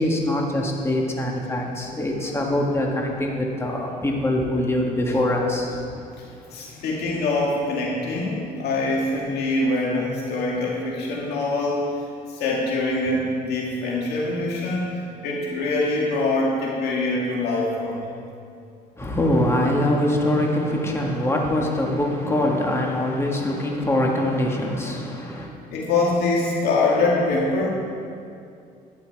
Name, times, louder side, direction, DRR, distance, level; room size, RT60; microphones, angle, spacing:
voice 1, 0.0-5.8 19.0-25.5, left 1 dB, 15° left, -1 dB, 1.7 m, -23 dB
voice 2, 6.2-18.1 25.7-27.7, left 2 dB, 75° left, -3 dB, 2.1 m, -24 dB
11.5 x 10.0 x 4.7 m, 2.4 s
cardioid pair, 110°, 17 cm